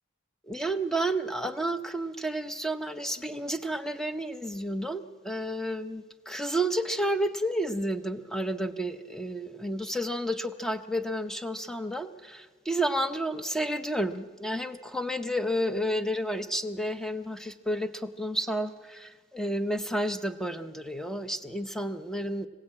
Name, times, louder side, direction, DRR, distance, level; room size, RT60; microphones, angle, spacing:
voice 1, 0.5-22.5, right 1 dB, ahead, 9 dB, 0.7 m, -31 dB
25.0 x 16.5 x 8.7 m, 1.5 s
head